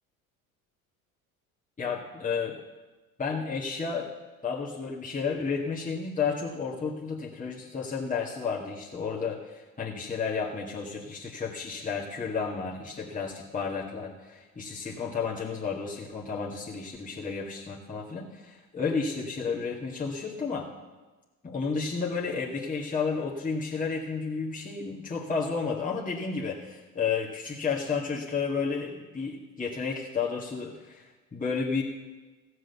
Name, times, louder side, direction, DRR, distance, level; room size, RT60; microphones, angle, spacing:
voice 1, 1.8-2.6 3.2-4.1 4.4-20.7 21.4-31.8, left 5 dB, 20° left, -3 dB, 1.9 m, -32 dB
15.5 x 6.4 x 7.0 m, 1.2 s
hypercardioid pair, 70°, 42 cm